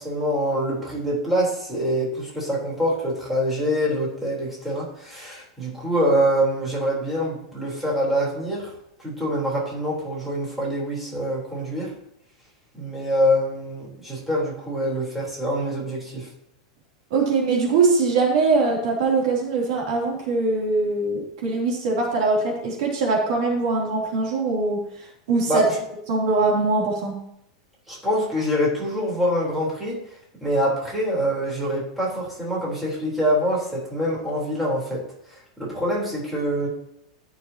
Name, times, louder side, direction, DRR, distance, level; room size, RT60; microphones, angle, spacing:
voice 1, 0.0-8.7 9.0-11.9 12.7-16.3 25.5-25.8 27.9-30.0 30.4-36.7, equal, 5° right, -5 dB, 3.8 m, -25 dB
voice 2, 17.1-24.8 25.3-25.6 26.1-27.2, right 3 dB, 65° right, -1 dB, 3.1 m, -22 dB
13.5 x 6.5 x 2.9 m, 0.78 s
supercardioid pair, 140°, 3 cm